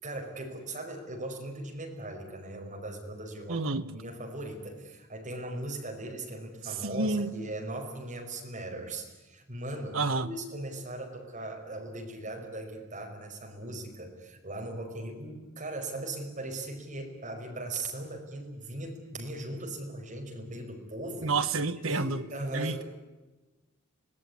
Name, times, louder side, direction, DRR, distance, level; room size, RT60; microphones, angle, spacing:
voice 1, 0.0-3.7 3.9-21.3 21.8-22.8, right 2 dB, 35° right, 5.3 m, -39 dB
voice 2, 3.5-3.9 6.8-7.3 9.9-10.3 21.2-22.2 22.5-22.8, right 3 dB, 65° right, 1.2 m, -29 dB
26.0 x 19.0 x 9.7 m
head